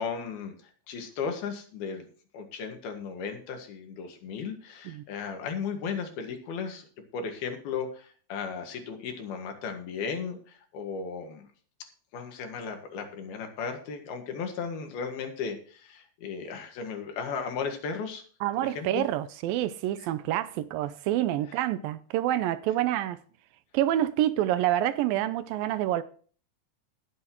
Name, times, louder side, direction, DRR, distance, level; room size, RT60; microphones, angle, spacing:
voice 1, 0.0-2.1 2.3-6.9 7.1-11.5 12.1-18.2 18.6-19.0 20.0-20.1, left 6 dB, 80° left, 3.7 m, -35 dB
voice 2, 18.4-23.2 23.7-26.0, right 13 dB, 80° right, 2.3 m, -27 dB
19.5 x 8.0 x 3.0 m
omnidirectional pair, 4.3 m